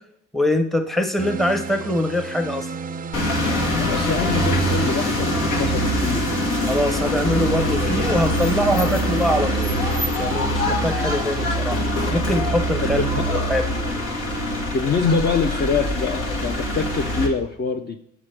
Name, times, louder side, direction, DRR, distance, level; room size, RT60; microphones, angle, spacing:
voice 1, 0.3-2.7 6.7-9.9 10.1-11.8 12.1-13.7, left 1 dB, ahead, 6 dB, 0.7 m, -23 dB
sound 1, 1.2-10.1, right 6 dB, 30° right, 0.4 m, -32 dB
sound 2, 3.1-17.3, equal, 85° left, 1.4 m, -23 dB
voice 2, 3.8-6.3 12.8-13.2 14.7-18.0, left 5 dB, 35° left, 5 dB, 0.5 m, -24 dB
7.3 x 4.9 x 3.3 m, 0.77 s
cardioid pair, 90°, 30 cm